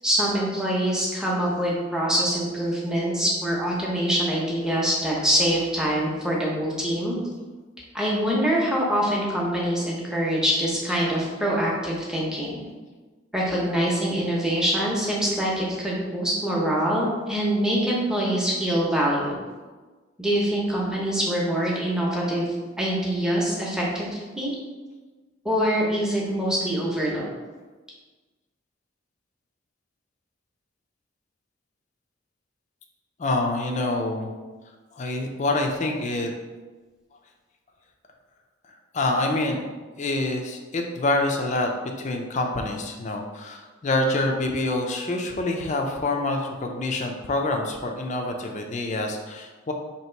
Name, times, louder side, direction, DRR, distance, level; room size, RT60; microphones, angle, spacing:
voice 1, 0.0-7.2 7.9-12.6 13.3-19.3 20.2-24.5 25.4-27.2, equal, 5° right, -4 dB, 0.7 m, -24 dB
voice 2, 33.2-34.3 34.9-36.3 38.9-39.6 40.0-41.7 42.0-49.7, left 2 dB, 35° left, 3 dB, 0.4 m, -26 dB
2.9 x 2.9 x 4.4 m, 1.3 s
head